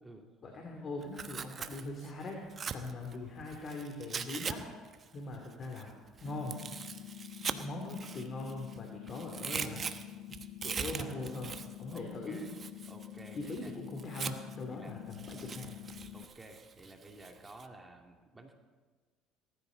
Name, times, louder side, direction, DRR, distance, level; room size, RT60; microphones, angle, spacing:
voice 1, 0.4-2.4 2.7-4.7 5.1-6.6 7.4-9.9 10.3-10.4 10.6-12.4 13.3-15.8, left 2 dB, 45° left, 1 dB, 2.9 m, -41 dB
Tearing, 1.0-4.5 4.8-8.8 9.1-14.6 15.1-17.7, right 6 dB, 40° right, 0.9 m, -42 dB
sound 1, 6.2-16.2, left 12 dB, 75° left, 0.7 m, -47 dB
voice 2, 11.9-12.5 12.9-13.7 14.7-15.0 16.1-18.5, right 2 dB, 15° right, 3 dB, 2.5 m, -52 dB
19.0 x 14.0 x 4.0 m, 1.4 s
supercardioid pair, 80°, 0 cm